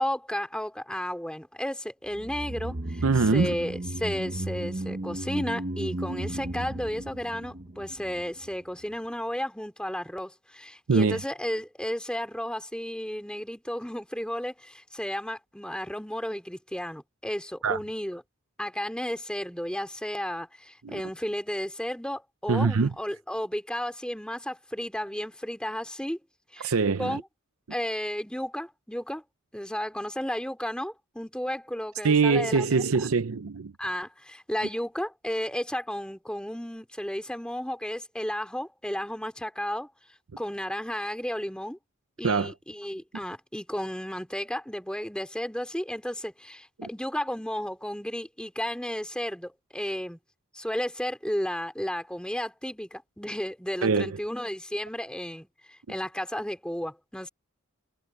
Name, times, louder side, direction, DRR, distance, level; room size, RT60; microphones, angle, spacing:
voice 1, 0.0-3.0 3.3-18.2 18.6-26.2 26.5-26.7 27.0-27.2 27.7-29.2 29.5-32.6 33.8-39.9 40.4-41.8 42.2-50.2 50.5-55.5 55.9-57.3, equal, 5° left, 3.1 m, -33 dB
sound 1, 2.1-8.5 8.8-8.9, right 1 dB, 40° right, 1.0 m, -35 dB
voice 2, 3.0-3.5 10.9-11.2 17.6-17.8 20.8-21.0 22.5-22.9 26.6-27.2 32.0-33.7 42.2-42.5 46.8-46.9 53.8-54.2 55.9-56.0, right 4 dB, 80° right, 0.6 m, -24 dB
head